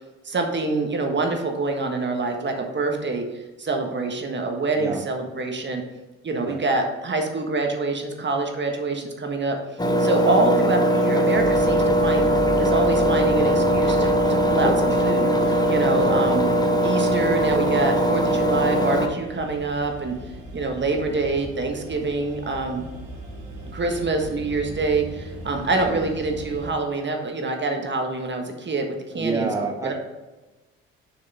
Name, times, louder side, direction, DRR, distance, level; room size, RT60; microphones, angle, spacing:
voice 1, 0.2-3.2 3.6-5.8 6.2-9.6 10.0-12.3 12.6-16.4 16.8-20.1 20.5-22.9 23.7-29.5 29.8-29.9, right 3 dB, 35° right, 3 dB, 1.4 m, -26 dB
Engine, 9.8-19.1, equal, 10° left, 1.1 m, -20 dB
sound 1, 11.3-26.7, right 1 dB, 70° right, 1.5 m, -38 dB
voice 2, 25.7-26.0 29.2-29.9, right 3 dB, 10° right, 1 dB, 1.1 m, -28 dB
6.7 x 6.3 x 3.6 m, 1.2 s
hypercardioid pair, 45°, 31 cm